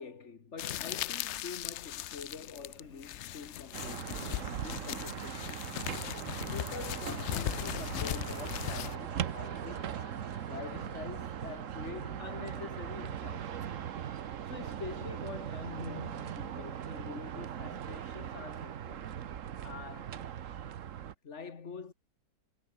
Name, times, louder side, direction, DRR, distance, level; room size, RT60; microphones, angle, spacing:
voice 1, 0.0-5.4 5.7-10.0 10.5-13.8 14.5-19.1 19.6-20.2 21.2-21.9, left 5 dB, 45° left, 1.9 m, -46 dB
sound 1, 0.6-8.9, left 13 dB, 75° left, 0.6 m, -38 dB
sound 2, 2.7-18.7, right 3 dB, 85° right, 4.5 m, -54 dB
sound 3, 3.7-21.1, right 9 dB, 55° right, 1.2 m, -40 dB
omnidirectional pair, 1.7 m